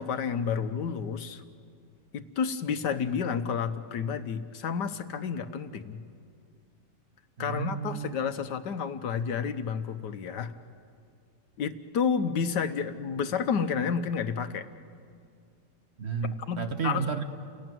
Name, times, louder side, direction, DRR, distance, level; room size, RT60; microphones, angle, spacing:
voice 1, 0.0-1.4 2.1-6.0 7.4-10.5 11.6-14.7 16.5-17.0, left 6 dB, 75° left, 10 dB, 1.6 m, -30 dB
voice 2, 7.4-8.1 16.0-17.2, right 6 dB, 45° right, 7 dB, 1.2 m, -32 dB
29.5 x 18.0 x 9.2 m, 2.3 s
omnidirectional pair, 1.8 m